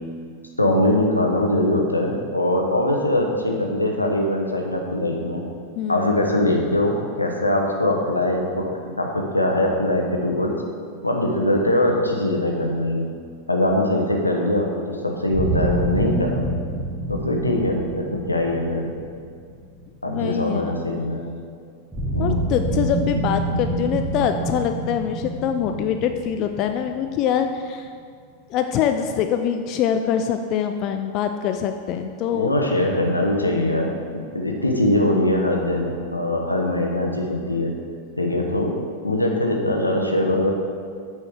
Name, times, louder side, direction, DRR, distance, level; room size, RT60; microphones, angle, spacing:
voice 1, 0.6-5.4 5.9-10.5 11.0-13.1 13.5-16.4 17.1-18.9 20.0-21.2 22.1-22.4 23.5-23.6 32.3-33.9 34.1-37.7 38.2-38.8 39.0-40.5, left 1 dB, 85° left, 1 dB, 0.9 m, -22 dB
voice 2, 5.8-6.2 20.1-21.0 22.2-27.9 28.5-32.5 33.7-34.0, left 8 dB, 40° left, 6 dB, 0.3 m, -24 dB
sound 1, 15.3-20.3 21.9-27.6, right 1 dB, 10° right, 1.5 m, -27 dB
8.8 x 4.6 x 4.8 m, 2.2 s
figure-of-eight pair, 90°, 0 cm